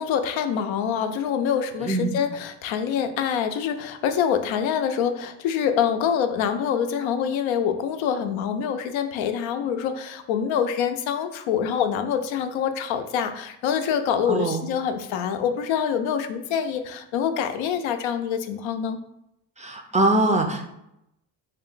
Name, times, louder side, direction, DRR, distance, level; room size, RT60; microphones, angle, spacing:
voice 1, 0.0-19.0, left 8 dB, 85° left, 8 dB, 0.6 m, -25 dB
voice 2, 1.8-2.1 14.3-14.6 19.6-20.7, right 2 dB, 15° right, 4 dB, 0.3 m, -22 dB
4.2 x 2.2 x 3.8 m, 0.82 s
cardioid pair, 100°, 45 cm